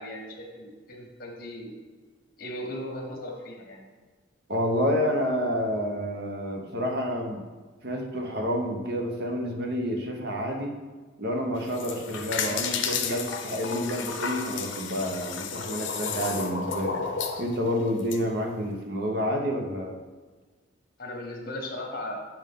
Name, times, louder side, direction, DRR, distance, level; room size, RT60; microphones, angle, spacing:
voice 1, 0.0-1.7 2.4-3.9 21.0-22.2, left 1 dB, 50° left, 0 dB, 1.4 m, -37 dB
voice 2, 4.5-7.4 7.8-10.7 11.2-16.9 17.4-20.0, equal, 55° right, 2 dB, 0.9 m, -29 dB
sound 1, 11.6-18.2, left 6 dB, 75° left, 0.6 m, -32 dB
7.2 x 5.6 x 3.7 m, 1.4 s
head